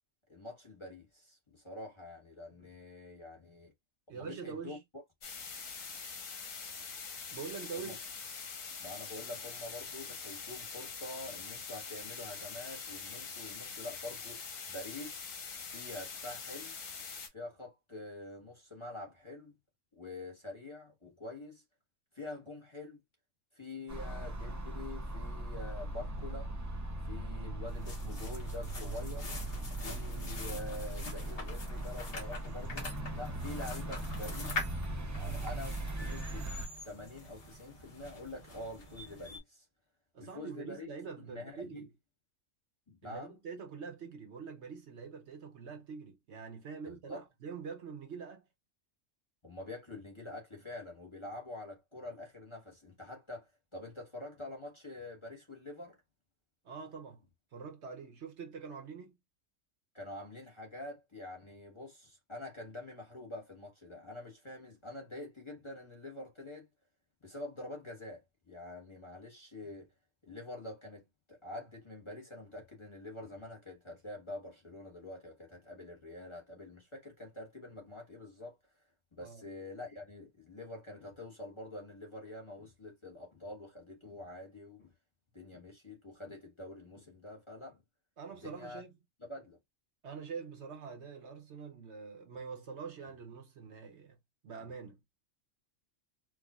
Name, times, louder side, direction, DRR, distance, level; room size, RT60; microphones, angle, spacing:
voice 1, 0.3-3.7 4.1-4.8 7.7-8.0 8.8-15.3 15.7-16.8 17.3-19.5 19.9-21.6 22.1-23.0 23.5-26.5 27.0-29.3 29.8-34.7 35.1-36.5 36.8-39.7 40.2-40.9 41.3-41.8 42.9-43.4 46.9-47.2 49.4-56.0 59.9-66.7 67.2-69.9 70.2-78.5 79.1-84.9 85.3-87.8 88.4-88.8 89.2-89.6, left 2 dB, 25° left, 1.0 m, -46 dB
voice 2, 4.1-4.8 7.3-8.0 40.1-41.9 43.0-48.4 56.6-57.2 57.5-59.2 79.2-79.4 88.2-89.0 90.0-94.2 94.4-95.0, right 5 dB, 60° right, 1.1 m, -45 dB
sound 1, 5.2-17.3, left 5 dB, 90° left, 1.4 m, -44 dB
sound 2, 23.9-36.7, right 1 dB, 30° right, 0.3 m, -39 dB
sound 3, 27.7-39.4, left 2 dB, 50° left, 1.4 m, -45 dB
4.7 x 2.3 x 2.3 m
omnidirectional pair, 1.3 m